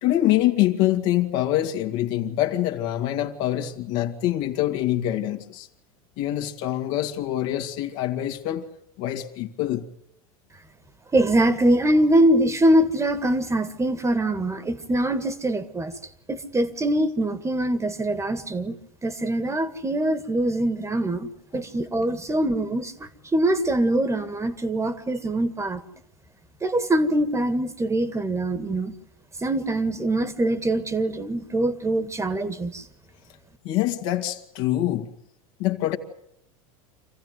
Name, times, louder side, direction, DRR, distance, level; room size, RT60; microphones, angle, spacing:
voice 1, 0.0-5.7 6.2-8.7 9.0-9.9 21.5-21.6 33.6-35.1 35.6-36.0, left 13 dB, 60° left, 2.1 m, -25 dB
voice 2, 11.1-15.9 16.3-18.8 19.0-25.8 26.6-28.9 29.4-32.8, right 1 dB, 15° right, 1.7 m, -23 dB
26.0 x 15.5 x 9.4 m
hypercardioid pair, 95°, 18 cm